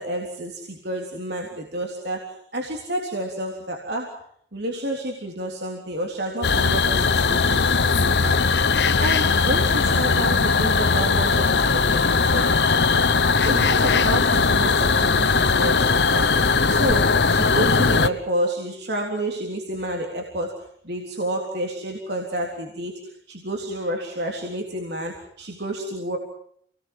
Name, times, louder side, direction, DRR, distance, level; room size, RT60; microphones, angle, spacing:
voice 1, 0.0-4.2 4.5-8.7 9.0-26.2, right 1 dB, 70° right, 1 dB, 3.6 m, -30 dB
sound 1, 6.4-18.1, left 4 dB, 75° left, 1.0 m, -19 dB
28.5 x 20.0 x 7.9 m, 0.67 s
head